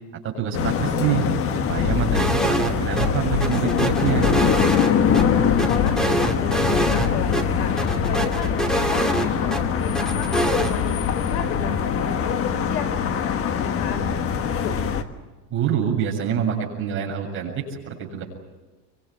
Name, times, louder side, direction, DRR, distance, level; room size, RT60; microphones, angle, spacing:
voice 1, 0.2-1.3 1.7-4.3 15.5-18.2, right 8 dB, 25° right, 0 dB, 7.5 m, -26 dB
sound 1, 0.5-15.0, left 7 dB, 30° left, 1.5 m, -23 dB
sound 2, 2.1-2.7 3.0-3.1 3.4-5.2 5.6-7.1 7.3-7.4 7.8-9.6 9.9-10.7, right 2 dB, ahead, 2.3 m, -25 dB
voice 2, 5.2-7.8 8.0-14.2 14.5-14.7, left 7 dB, 75° left, 10 dB, 4.7 m, -32 dB
25.0 x 24.5 x 8.9 m, 1.2 s
cardioid pair, 165°, 46 cm